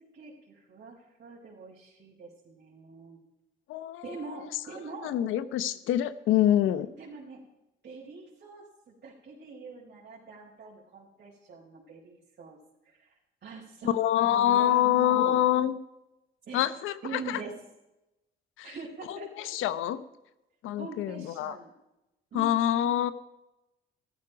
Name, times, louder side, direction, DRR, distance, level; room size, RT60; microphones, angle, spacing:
voice 1, 0.0-3.2 4.0-5.1 6.7-7.4 7.8-12.6 12.8-13.1 13.4-14.0 14.2-15.4 16.5-16.6 17.0-17.6 18.6-19.6 20.8-21.7 22.3-23.1, right 4 dB, 55° right, -5 dB, 4.7 m, -43 dB
voice 2, 3.7-4.0 5.0-6.9 13.8-15.8 16.5-17.4 18.6-18.7 19.1-20.0 20.6-21.6 22.3-23.1, left 12 dB, 90° left, 14 dB, 0.9 m, -26 dB
14.5 x 13.5 x 5.1 m, 0.93 s
cardioid pair, 90°, 20 cm